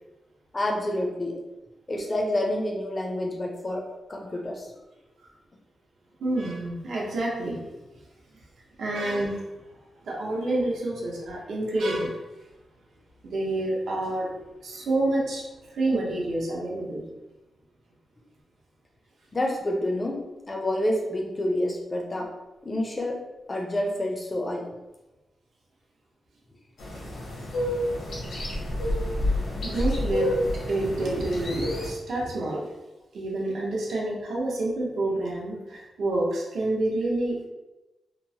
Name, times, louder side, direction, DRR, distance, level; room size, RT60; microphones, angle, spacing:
voice 1, 0.5-1.4 1.9-4.7 19.3-22.3 22.6-23.2 23.5-24.7, left 1 dB, 25° left, 1 dB, 0.4 m, -28 dB
voice 2, 6.2-7.6 8.8-9.6 10.0-12.2 13.2-14.3 14.6-17.0 29.6-30.3 30.7-32.7 33.1-37.4, right 2 dB, 85° right, -3 dB, 0.7 m, -28 dB
sound 1, 26.8-31.9, left 1 dB, 75° left, 0.7 m, -29 dB
2.9 x 2.0 x 2.7 m, 1.0 s
wide cardioid pair, 170°, 0 cm